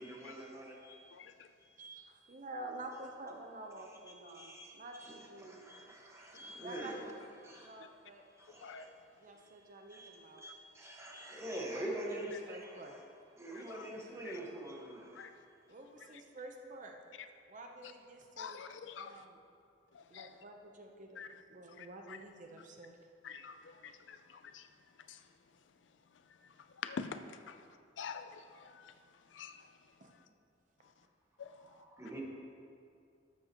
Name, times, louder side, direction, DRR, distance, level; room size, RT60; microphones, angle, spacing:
voice 1, 0.0-1.1 1.6-1.7 4.3-5.2 5.4-7.1 7.4-7.7 8.3-8.9 9.4-9.5 9.9-13.0 13.4-15.3 31.6-32.2, right 1 dB, 15° right, -2 dB, 1.4 m, -45 dB
voice 2, 1.1-1.5 8.6-8.9 13.5-13.9 14.2-14.4 15.2-15.3 17.8-17.9 18.4-19.2 19.9-20.3 21.2-21.3 21.8-22.2 23.2-24.7 25.1-25.2 26.4-27.7 28.0-28.9 29.3-29.7 31.4-31.6, left 6 dB, 80° left, 9 dB, 0.5 m, -46 dB
voice 3, 1.8-5.6 6.6-8.3 9.2-10.4 11.7-13.0 15.7-17.0 17.5-18.6 19.0-19.4 20.1-23.0 30.0-30.1, right 2 dB, 45° right, 3 dB, 0.8 m, -49 dB
12.5 x 7.4 x 3.0 m, 2.3 s
head